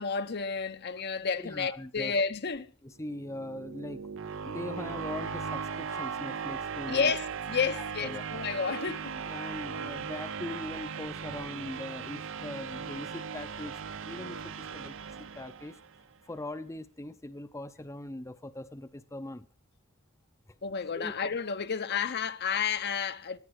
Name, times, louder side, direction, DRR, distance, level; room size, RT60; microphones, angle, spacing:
voice 1, 0.0-2.7 6.9-9.1 20.6-23.4, left 5 dB, 50° left, 0.8 m, -31 dB
voice 2, 1.4-2.1 2.8-4.0 4.5-7.1 7.8-8.3 9.3-14.9 15.4-15.8 16.2-19.5 20.9-21.1, left 1 dB, 15° left, 0.7 m, -41 dB
sound 1, 3.0-16.0, right 6 dB, 65° right, 0.7 m, -38 dB
17.5 x 12.0 x 4.8 m
head